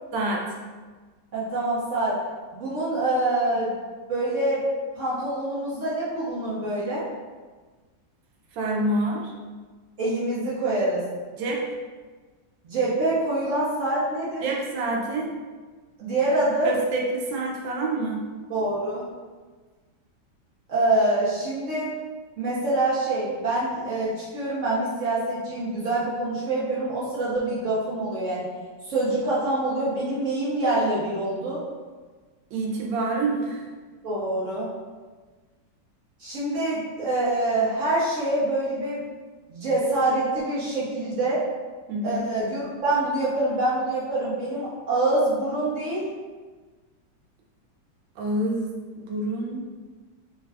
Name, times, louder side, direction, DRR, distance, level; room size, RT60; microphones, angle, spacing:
voice 1, 0.1-0.4 8.5-9.3 11.3-11.6 14.4-15.3 16.6-18.2 32.5-33.7 41.9-42.2 48.2-49.7, right 2 dB, 80° right, -1 dB, 1.3 m, -27 dB
voice 2, 1.3-2.2 2.5-3.7 4.1-4.6 5.0-7.0 10.0-11.1 12.6-14.4 16.0-16.7 18.5-19.0 20.7-21.9 22.4-28.5 28.8-31.6 34.0-34.7 36.2-39.0 39.5-41.4 42.0-46.0, right 2 dB, 55° right, -8 dB, 0.9 m, -25 dB
3.3 x 2.3 x 3.3 m, 1.4 s
omnidirectional pair, 2.0 m